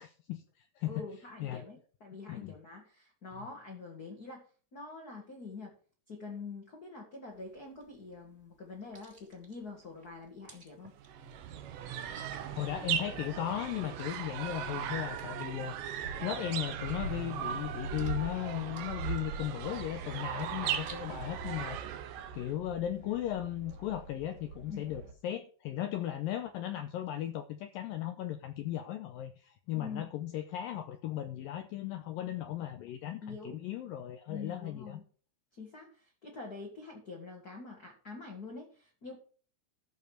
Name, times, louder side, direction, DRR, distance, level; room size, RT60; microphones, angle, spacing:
voice 1, 0.0-1.0 1.4-1.6 2.3-2.6 12.5-15.8 16.2-21.9 22.3-35.0, left 12 dB, 80° left, 8 dB, 2.1 m, -37 dB
voice 2, 0.8-4.4 4.7-5.7 6.1-10.9 24.7-24.9 29.7-30.1 33.2-33.6 34.3-35.0 35.6-39.2, left 4 dB, 35° left, 0 dB, 1.5 m, -45 dB
sound 1, 7.3-21.3, right 2 dB, 20° right, 2.3 m, -60 dB
sound 2, 11.0-22.5, right 9 dB, 75° right, 2.1 m, -38 dB
sound 3, 16.0-25.1, right 4 dB, 90° right, 4.1 m, -44 dB
13.5 x 5.3 x 6.3 m, 0.42 s
omnidirectional pair, 4.8 m